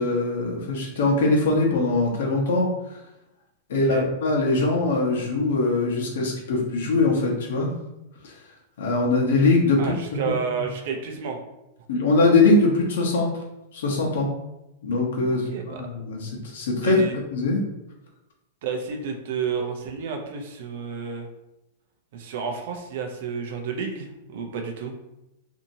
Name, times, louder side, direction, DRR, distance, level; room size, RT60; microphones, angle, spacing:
voice 1, 0.0-2.7 3.7-7.7 8.2-8.3 8.8-9.9 11.9-13.3 13.7-14.3 14.8-17.6, left 3 dB, 75° left, -1 dB, 0.9 m, -22 dB
voice 2, 9.8-11.4 15.3-15.8 16.8-17.1 18.6-21.3 22.1-24.9, right 6 dB, 60° right, 3 dB, 0.5 m, -31 dB
2.8 x 2.7 x 2.6 m, 0.93 s
supercardioid pair, 145°, 0 cm